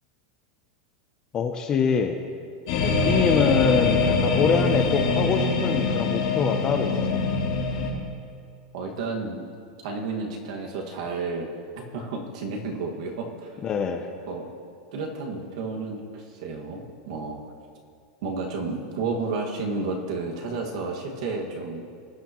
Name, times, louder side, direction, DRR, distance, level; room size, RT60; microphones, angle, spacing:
voice 1, 1.3-2.2 2.8-7.2 13.6-14.1, left 6 dB, 20° left, 6 dB, 0.5 m, -24 dB
sound 1, 2.7-7.9, left 4 dB, 60° left, 3.3 m, -23 dB
voice 2, 8.7-9.4 9.8-11.5 11.8-13.5 14.3-14.5 14.9-17.4 18.2-21.8, right 3 dB, 55° right, 0 dB, 1.8 m, -31 dB
20.0 x 9.5 x 3.0 m, 2.3 s
supercardioid pair, 180°, 4 cm